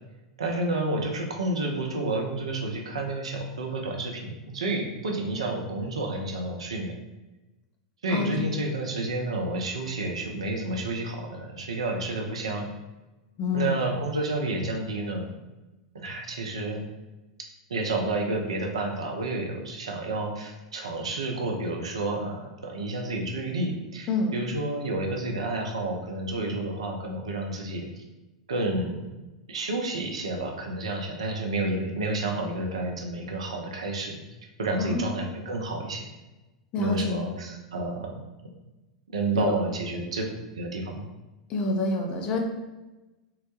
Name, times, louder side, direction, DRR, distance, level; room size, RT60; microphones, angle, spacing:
voice 1, 0.4-6.9 8.0-12.7 13.5-15.3 15.9-16.8 17.7-27.9 28.5-29.0 29.5-34.2 34.6-36.0 36.8-38.1 39.1-40.2 40.5-41.0, right 2 dB, 70° right, 2 dB, 0.5 m, -30 dB
voice 2, 13.4-13.7 24.1-24.3 34.8-35.1 36.7-37.2 39.3-39.5 41.5-42.4, left 3 dB, 35° left, 2 dB, 0.5 m, -27 dB
3.7 x 2.1 x 3.0 m, 1.1 s
figure-of-eight pair, 90°, 3 cm